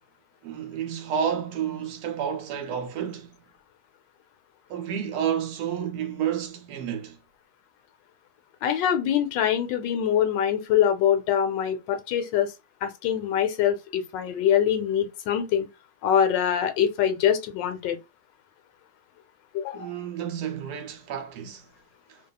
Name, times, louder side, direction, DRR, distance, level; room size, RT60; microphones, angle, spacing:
voice 1, 0.4-3.3 4.7-7.2 19.7-21.7 22.1-22.2, right 8 dB, 70° right, 1.1 m, -30 dB
voice 2, 8.6-12.5 12.8-15.7 16.0-18.0 19.5-19.9, left 9 dB, 85° left, 1.3 m, -24 dB
2.7 x 2.3 x 2.2 m
omnidirectional pair, 1.9 m